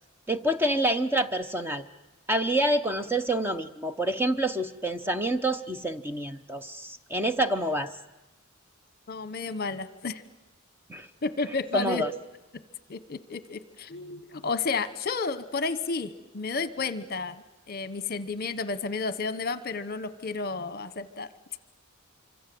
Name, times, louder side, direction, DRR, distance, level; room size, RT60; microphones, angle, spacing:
voice 1, 0.3-1.8 2.3-7.9 10.9-11.1 11.7-12.1, right 1 dB, 10° right, 8 dB, 0.8 m, -27 dB
voice 2, 9.1-10.2 11.2-12.0 12.9-21.3, left 4 dB, 50° left, 14 dB, 1.1 m, -32 dB
25.5 x 25.5 x 7.8 m, 1.1 s
head